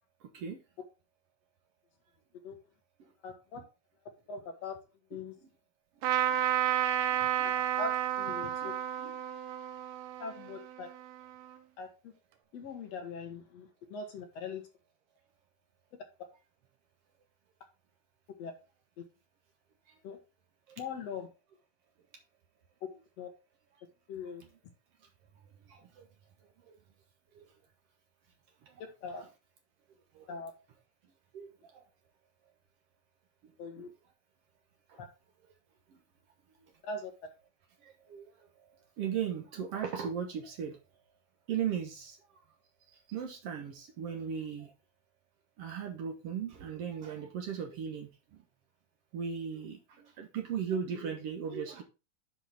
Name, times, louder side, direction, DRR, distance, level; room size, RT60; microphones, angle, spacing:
voice 1, 3.2-3.6 4.3-4.8 5.1-5.3 7.4-8.7 10.2-10.9 11.8-12.1 12.5-14.6 18.4-18.5 20.0-20.2 20.8-21.3 23.2-23.3 24.1-24.4 29.0-29.2 30.3-30.5 33.6-33.9 36.8-37.1, left 4 dB, 55° left, 3 dB, 2.1 m, -41 dB
Trumpet, 6.0-11.5, right 11 dB, 90° right, 2.8 m, -32 dB
voice 2, 6.9-7.2 8.6-8.7 9.0-9.1 19.9-20.0 20.7-20.8 25.7-26.1 26.4-26.7 27.3-27.4 28.6-28.8 30.1-30.3 31.3-31.8 33.4-33.5 33.8-33.9 34.9-35.0 35.9-36.0 37.8-38.5 39.0-40.8 41.5-42.2 42.9-44.7 45.6-48.4 49.1-51.8, right 7 dB, 70° right, 4 dB, 1.5 m, -38 dB
9.5 x 4.9 x 3.4 m, 0.29 s
omnidirectional pair, 4.2 m